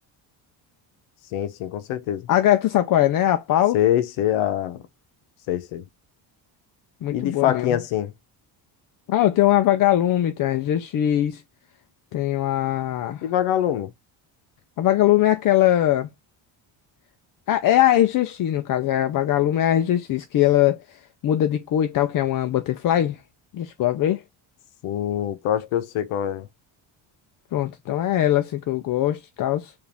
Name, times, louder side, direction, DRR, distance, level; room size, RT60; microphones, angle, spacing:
voice 1, 1.3-2.3 3.7-4.8 5.5-5.8 7.1-8.1 13.2-13.9 24.8-26.5, left 11 dB, 90° left, 0.8 m, -24 dB
voice 2, 2.3-3.8 7.0-7.8 9.1-11.4 12.1-13.2 14.8-16.1 17.5-20.8 21.2-23.2 23.5-24.2 27.5-29.7, left 12 dB, 45° left, 0.4 m, -21 dB
4.8 x 2.6 x 3.3 m
cardioid pair, 125°, 48 cm